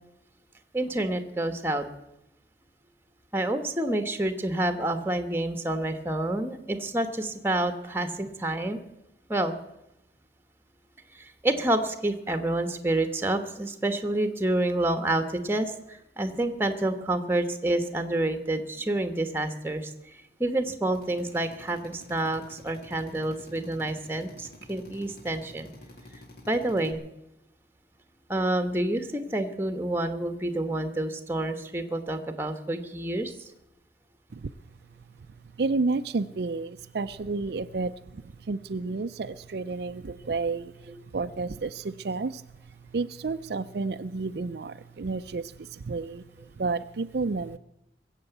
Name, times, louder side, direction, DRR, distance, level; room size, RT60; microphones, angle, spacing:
voice 1, 0.7-1.9 3.3-8.8 9.3-9.5 11.1-25.7 26.1-26.2 26.5-27.0 28.3-33.5 40.2-40.3 40.9-41.0 46.4-46.5, right 1 dB, 10° right, 8 dB, 1.2 m, -28 dB
Drill, 20.9-26.9, left 1 dB, 60° left, 2.5 m, -50 dB
voice 2, 35.6-46.2 46.6-47.6, right 3 dB, 65° right, 10 dB, 0.5 m, -31 dB
21.0 x 8.2 x 8.0 m, 0.89 s
head